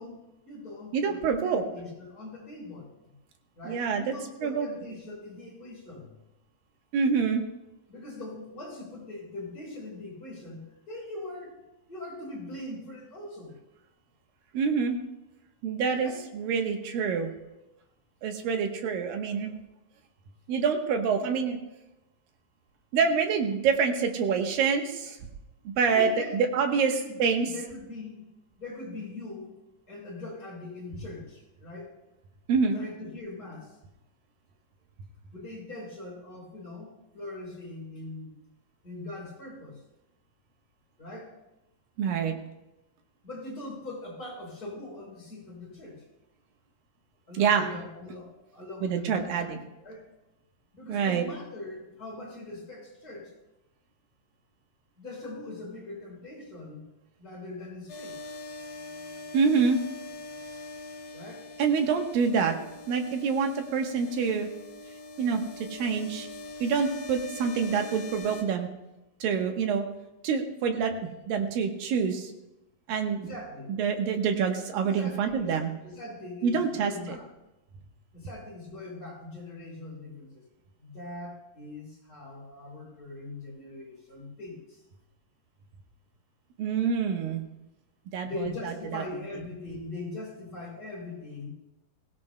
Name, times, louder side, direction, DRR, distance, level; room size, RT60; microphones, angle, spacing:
voice 1, 0.0-3.2 3.6-6.1 7.9-11.5 11.9-13.6 15.9-16.2 25.9-28.2 28.6-29.5 29.9-31.9 32.7-33.8 35.3-38.3 38.8-39.8 41.0-41.3 43.2-46.0 47.3-50.1 50.7-53.3 55.0-56.8 57.2-58.2 61.1-61.5 73.1-73.7 74.7-75.6 75.8-77.3 78.1-80.4 80.8-84.8 88.2-91.5, left 2 dB, 25° left, -2 dB, 5.4 m, -41 dB
voice 2, 0.9-1.6 3.7-4.1 4.4-4.7 6.9-7.4 14.5-15.0 15.6-17.3 18.2-19.5 20.5-21.6 22.9-25.2 25.7-26.9 27.2-27.5 32.5-32.8 42.0-42.4 47.3-47.7 48.8-49.6 50.9-51.2 59.3-59.8 61.6-62.6 62.9-64.5 65.2-66.3 66.6-68.7 69.2-69.8 70.2-72.3 72.9-73.2 73.8-75.7 76.4-76.9 86.6-87.4 88.1-89.0, right 6 dB, 85° right, 4 dB, 2.9 m, -26 dB
sound 1, 57.9-68.4, left 2 dB, 40° left, 3.2 m, -43 dB
21.5 x 16.5 x 2.2 m, 0.96 s
omnidirectional pair, 4.0 m